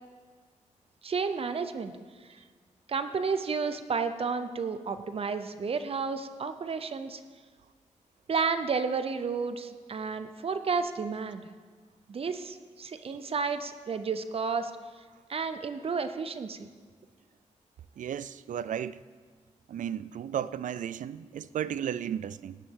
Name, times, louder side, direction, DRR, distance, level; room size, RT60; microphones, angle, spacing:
voice 1, 1.0-1.9 2.9-7.2 8.3-11.5 12.1-14.7 15.3-16.7, right 5 dB, 50° right, 0.7 m, -31 dB
voice 2, 18.0-19.0 19.7-22.6, right 9 dB, 85° right, 0.4 m, -34 dB
17.5 x 10.5 x 3.7 m
wide cardioid pair, 140°, 13 cm